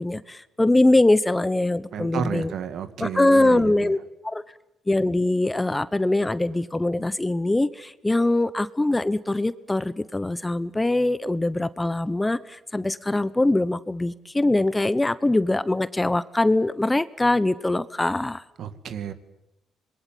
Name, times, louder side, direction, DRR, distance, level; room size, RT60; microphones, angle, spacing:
voice 1, 0.0-2.5 3.0-4.0 4.2-4.4 4.9-18.4, left 2 dB, 15° left, 16 dB, 0.9 m, -22 dB
voice 2, 1.9-3.9 18.6-19.1, right 8 dB, 65° right, 11 dB, 2.1 m, -31 dB
26.0 x 21.5 x 9.3 m, 0.88 s
cardioid pair, 90°, 0 cm